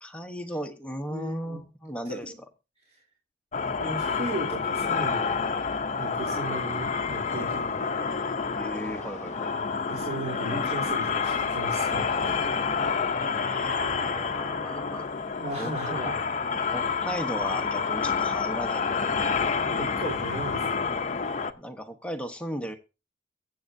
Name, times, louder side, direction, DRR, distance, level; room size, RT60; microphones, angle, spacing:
voice 1, 0.0-2.3 8.5-9.5 13.2-15.1 15.6-16.1 16.5-19.2 21.5-22.8, equal, 5° left, 5 dB, 1.0 m, -36 dB
voice 2, 1.1-1.6 2.0-2.4 3.8-5.4 6.0-8.1 9.9-12.4 13.8-13.9 15.4-16.2 19.7-20.9, right 1 dB, 35° right, -4 dB, 3.1 m, -36 dB
sound 1, 3.5-21.5, left 5 dB, 40° left, 0.7 m, -28 dB
23.0 x 7.8 x 2.7 m, 0.29 s
head